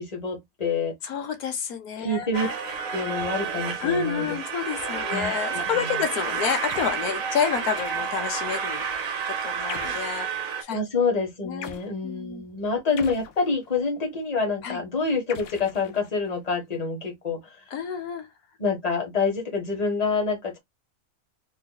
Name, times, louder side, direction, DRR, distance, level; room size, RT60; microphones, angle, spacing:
voice 1, 0.0-0.9 2.0-2.5 2.9-4.4 4.8-6.0 10.7-17.6 18.6-20.6, left 4 dB, 30° left, 1.4 m, -27 dB
voice 2, 1.0-2.5 3.8-10.8 11.4-12.4 14.6-14.8 17.7-18.3, left 7 dB, 90° left, 1.4 m, -29 dB
sound 1, 2.3-10.6, right 6 dB, 70° right, 1.3 m, -30 dB
sound 2, 6.7-7.1 7.8-8.4 9.7-10.2 11.6-11.9 13.0-13.8 15.3-16.4, left 8 dB, 75° left, 1.1 m, -42 dB
3.9 x 3.0 x 2.3 m
omnidirectional pair, 1.5 m